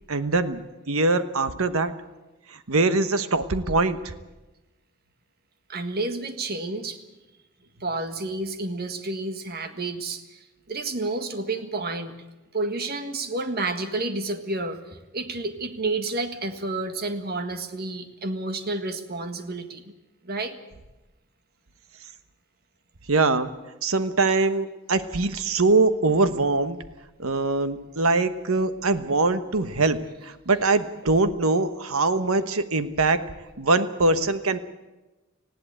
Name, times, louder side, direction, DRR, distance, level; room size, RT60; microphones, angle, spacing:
voice 1, 0.1-0.6 0.9-1.9 2.7-4.1 23.1-23.5 23.8-26.8 27.2-33.3 33.6-34.6, right 3 dB, 85° right, 11 dB, 1.2 m, -23 dB
voice 2, 5.7-7.0 7.8-10.4 10.7-12.1 12.5-14.8 15.1-19.9 20.2-20.6, right 2 dB, 50° right, 8 dB, 1.7 m, -30 dB
19.5 x 15.5 x 8.9 m, 1.1 s
head